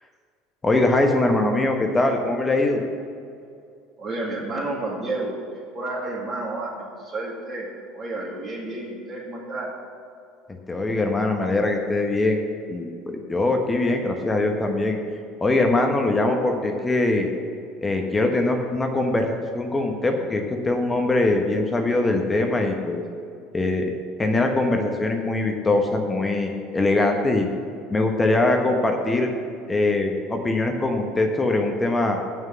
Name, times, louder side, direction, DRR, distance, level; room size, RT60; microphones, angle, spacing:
voice 1, 0.6-2.8 10.7-12.4 12.7-15.0 15.4-17.3 17.8-23.0 23.5-23.9 24.2-27.5 27.9-29.3 29.7-32.3, left 2 dB, 20° left, 3 dB, 1.2 m, -22 dB
voice 2, 4.0-7.7 7.9-9.7, right 2 dB, 35° right, -7 dB, 2.4 m, -31 dB
8.9 x 6.6 x 8.4 m, 2.4 s
figure-of-eight pair, 65°, 0 cm